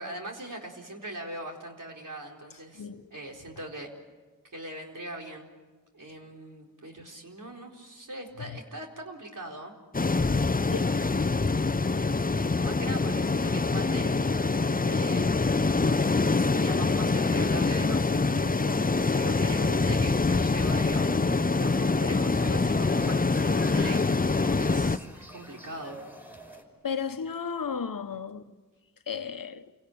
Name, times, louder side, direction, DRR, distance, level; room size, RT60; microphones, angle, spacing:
voice 1, 0.0-3.9 4.5-5.5 5.9-9.7 12.6-14.1 14.8-21.1 21.6-24.1 24.5-26.0, right 1 dB, 65° right, 4.3 m, -41 dB
voice 2, 2.7-3.1 8.4-8.6 10.7-10.9 26.8-28.5 29.1-29.7, left 6 dB, 75° left, 1.1 m, -34 dB
sound 1, 9.9-25.0, left 3 dB, 25° left, 0.7 m, -25 dB
sound 2, 20.0-26.6, equal, 5° right, 5.2 m, -47 dB
28.5 x 17.5 x 8.5 m
wide cardioid pair, 55°, 34 cm